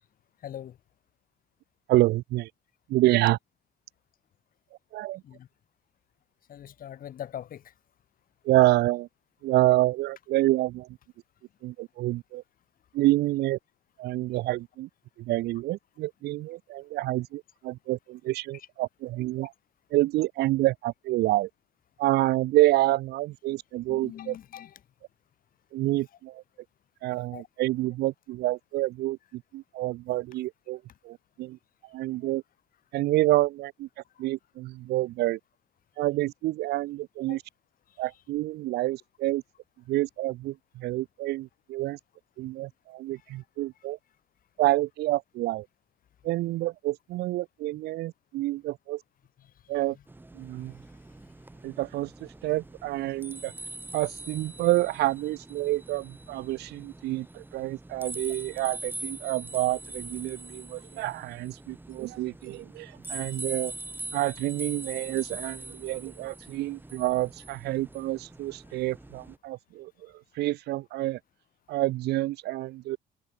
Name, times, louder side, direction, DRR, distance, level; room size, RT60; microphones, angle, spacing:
voice 1, 0.4-0.8 5.2-5.5 6.5-7.7 18.5-18.7 23.9-24.8 27.3-27.4 32.2-32.3 34.2-34.3 37.3-37.4 38.0-38.2 49.4-49.5 49.8-50.0, left 10 dB, 55° left, 6.9 m, -42 dB
voice 2, 1.9-2.5 2.9-3.4 4.9-5.2 8.4-9.1 9.4-10.9 11.6-12.4 12.9-13.6 14.0-14.9 15.2-19.5 19.9-21.5 22.0-24.3 25.7-26.4 27.0-31.6 31.9-32.4 32.9-33.9 34.2-35.4 36.0-37.4 38.0-39.4 39.9-42.0 42.4-44.0 44.6-45.7 46.2-49.0 49.7-50.0 50.3-50.7 51.6-53.5 53.9-63.7 64.1-71.2 71.7-73.0, right 17 dB, 75° right, 0.9 m, -28 dB
sound 1, 50.1-69.4, right 2 dB, 10° right, 4.4 m, -43 dB
cardioid pair, 110°, 17 cm